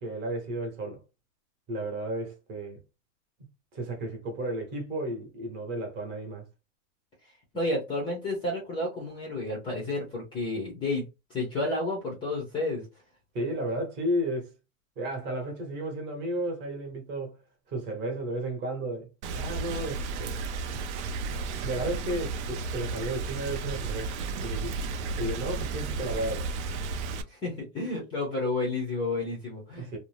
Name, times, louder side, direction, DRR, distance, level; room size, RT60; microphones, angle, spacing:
voice 1, 0.0-1.0 1.7-2.8 3.7-6.5 13.3-14.5 15.0-17.3 17.7-20.4 20.7-20.8 21.2-24.7 25.2-26.5 29.8-30.0, right 1 dB, 25° right, 0.9 m, -33 dB
voice 2, 7.5-12.8 19.7-19.8 27.3-30.0, left 2 dB, 15° left, 0.5 m, -31 dB
Rain, 19.2-27.2, right 4 dB, 60° right, 0.5 m, -33 dB
2.6 x 2.0 x 3.1 m
supercardioid pair, 155°, 39 cm